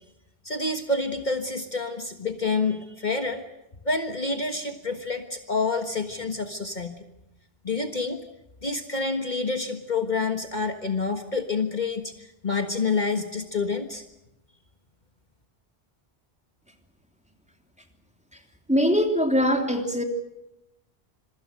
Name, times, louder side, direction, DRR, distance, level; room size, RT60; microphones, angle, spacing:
voice 1, 0.4-3.4 3.8-7.0 7.6-8.2 8.6-14.0, left 3 dB, 45° left, 6 dB, 1.6 m, -28 dB
voice 2, 18.7-20.0, equal, 5° right, 3 dB, 3.2 m, -22 dB
27.0 x 23.5 x 6.4 m, 0.89 s
omnidirectional pair, 1.1 m